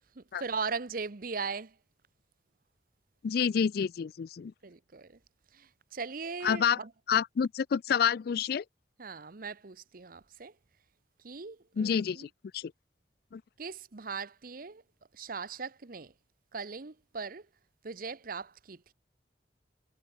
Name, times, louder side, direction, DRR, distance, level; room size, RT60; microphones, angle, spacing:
voice 1, 0.1-1.8 4.6-5.2 5.5-6.9 9.0-10.5 11.2-12.3 13.6-14.8 15.1-16.1 16.5-17.5 17.8-18.9, right 5 dB, 50° right, 0.9 m, -39 dB
voice 2, 3.2-4.5 6.4-6.8 7.1-8.6 11.8-12.7 13.3-13.4, left 7 dB, 55° left, 0.3 m, -28 dB
head